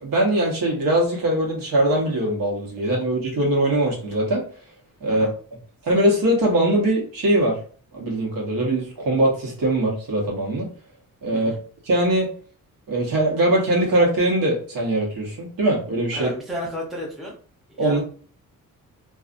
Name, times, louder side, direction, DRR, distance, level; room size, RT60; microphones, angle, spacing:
voice 1, 0.0-4.5 5.0-5.3 5.8-7.6 7.9-10.7 11.2-11.5 11.9-12.3 12.9-16.3 17.8-18.0, right 1 dB, 75° right, -2 dB, 1.1 m, -21 dB
voice 2, 16.1-17.3 17.8-18.0, equal, ahead, -4 dB, 0.6 m, -32 dB
2.6 x 2.3 x 2.5 m, 0.43 s
wide cardioid pair, 160°, 34 cm